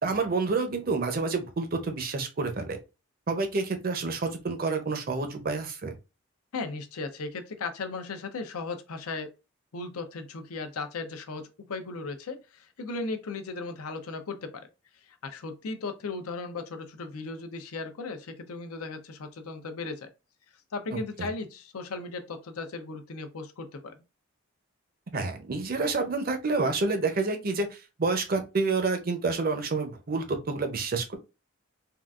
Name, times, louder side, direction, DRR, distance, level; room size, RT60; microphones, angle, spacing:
voice 1, 0.0-2.8 3.3-5.9 21.2-21.3 25.1-31.2, right 3 dB, 40° right, 0.5 m, -28 dB
voice 2, 6.5-9.3 9.7-14.7 15.1-20.1 20.7-23.9, left 3 dB, 85° left, 0.6 m, -36 dB
3.6 x 2.3 x 2.3 m
head